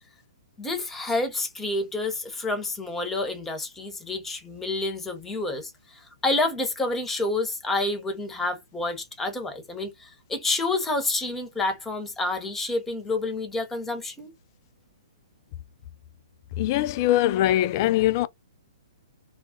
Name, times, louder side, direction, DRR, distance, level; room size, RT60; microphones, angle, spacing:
voice 1, 0.6-14.3, left 2 dB, 10° left, 0.8 m, -29 dB
voice 2, 16.6-18.3, left 14 dB, 40° left, 0.3 m, -22 dB
2.3 x 2.0 x 3.6 m
hypercardioid pair, 125°, 3 cm